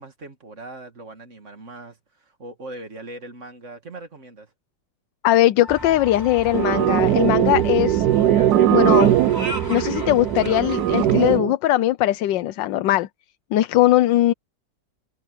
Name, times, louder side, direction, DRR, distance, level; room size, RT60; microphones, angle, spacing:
voice 1, 0.0-4.5, right 2 dB, 40° right, 2.3 m, -40 dB
voice 2, 5.2-8.1 8.7-9.2 9.7-13.1 13.5-14.3, left 14 dB, 90° left, 1.4 m, -20 dB
Wind instrument woodwind instrument, 5.6-10.6, equal, 25° left, 7.8 m, -42 dB
sound 1, 5.7-11.4, right 1 dB, 10° right, 4.1 m, -35 dB
sound 2, 6.5-11.5, right 12 dB, 70° right, 1.2 m, -19 dB
omnidirectional pair, 1.9 m